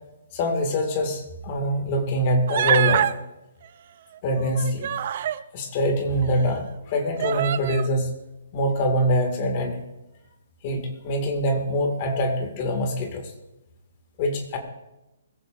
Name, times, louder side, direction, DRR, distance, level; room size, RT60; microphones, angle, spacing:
voice 1, 0.3-3.1 4.2-4.9 5.5-8.1 8.5-9.8 10.6-13.3 14.2-14.6, equal, 25° left, 4 dB, 2.1 m, -24 dB
Human voice, 2.5-3.1 4.3-5.4 6.2-6.3 7.2-7.9, right 10 dB, 35° right, 0.5 m, -25 dB
22.0 x 14.5 x 2.6 m, 0.95 s
hypercardioid pair, 180°, 0 cm